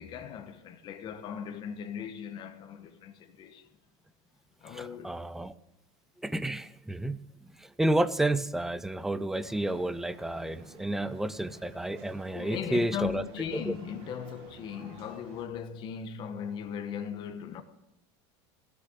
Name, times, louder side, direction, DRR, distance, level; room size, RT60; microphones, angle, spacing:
voice 1, 0.0-3.7 4.6-5.2 12.3-17.6, left 8 dB, 30° left, 1.2 m, -38 dB
voice 2, 4.7-5.5 6.2-13.2 13.5-13.7, right 1 dB, ahead, 0.4 m, -31 dB
sound 1, 9.3-15.5, right 4 dB, 45° right, 2.9 m, -53 dB
16.5 x 6.9 x 7.2 m
supercardioid pair, 160°, 15 cm